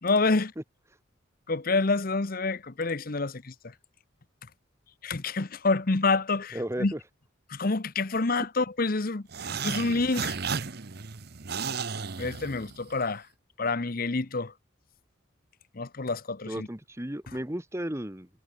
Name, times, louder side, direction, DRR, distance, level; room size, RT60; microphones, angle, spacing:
voice 1, 0.0-0.5 1.5-3.5 5.0-6.9 7.5-10.4 12.2-13.2 13.6-14.5 15.7-16.7, left 3 dB, 45° left, 0.9 m, -27 dB
voice 2, 6.5-7.0 16.5-18.3, right 1 dB, 15° right, 1.3 m, -34 dB
sound 1, 9.3-13.0, right 6 dB, 50° right, 0.9 m, -34 dB
head